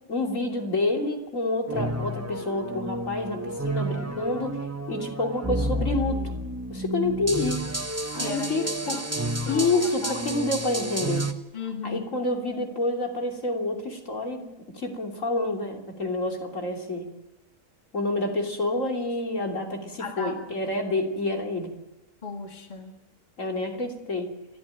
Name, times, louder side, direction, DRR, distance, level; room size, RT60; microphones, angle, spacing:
voice 1, 0.1-6.2 6.7-7.6 8.1-9.0 9.5-11.3 11.8-14.5 14.7-17.1 17.9-21.7 23.4-24.3, left 2 dB, 70° left, 2 dB, 3.5 m, -28 dB
sound 1, 1.7-11.3, right 1 dB, 10° right, 1.2 m, -31 dB
voice 2, 8.0-10.2 11.5-12.1 19.3-19.6 20.0-20.4 22.2-23.0, left 4 dB, 35° left, 3 dB, 2.0 m, -37 dB
28.5 x 13.5 x 9.3 m, 1.0 s
omnidirectional pair, 1.4 m